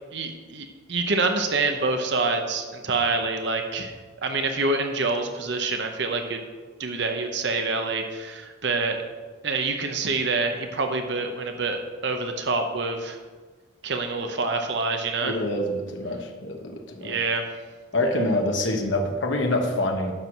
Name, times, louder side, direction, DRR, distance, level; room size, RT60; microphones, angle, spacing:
voice 1, 0.1-3.9 4.2-6.4 6.8-9.0 9.4-13.2 13.8-15.4 17.0-17.5 18.1-18.2, right 3 dB, 60° right, 5 dB, 0.9 m, -26 dB
voice 2, 15.2-17.2 17.9-20.1, left 1 dB, 75° left, 3 dB, 1.1 m, -26 dB
10.5 x 4.7 x 6.0 m, 1.4 s
head